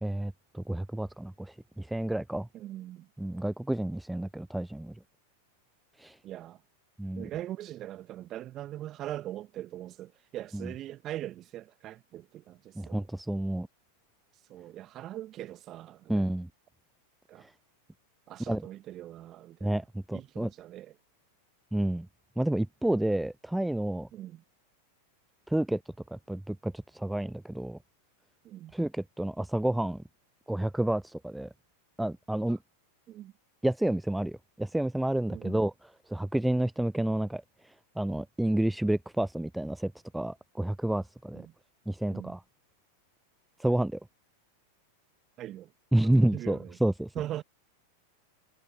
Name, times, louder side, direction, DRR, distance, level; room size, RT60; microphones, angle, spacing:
voice 1, 0.0-2.5 3.2-5.0 6.0-6.2 7.0-7.3 10.5-10.7 12.8-13.7 16.1-16.5 17.4-17.5 18.5-18.7 19.6-20.5 21.7-22.1 22.4-24.1 25.5-25.8 26.1-27.8 28.7-30.0 30.5-31.5 32.0-32.6 33.6-35.7 36.1-41.4 41.9-42.4 43.6-44.0 45.9-47.1, right 1 dB, 5° right, 0.3 m, -30 dB
voice 2, 2.5-3.1 6.2-6.6 7.2-13.0 14.5-16.3 17.3-17.5 18.3-19.8 20.1-20.9 24.1-24.4 28.4-28.7 33.1-33.3 35.3-35.7 41.3-41.5 42.1-42.3 45.4-45.7 46.0-46.8 47.1-47.4, right 13 dB, 30° right, 1.0 m, -41 dB
figure-of-eight pair, 90°, 0 cm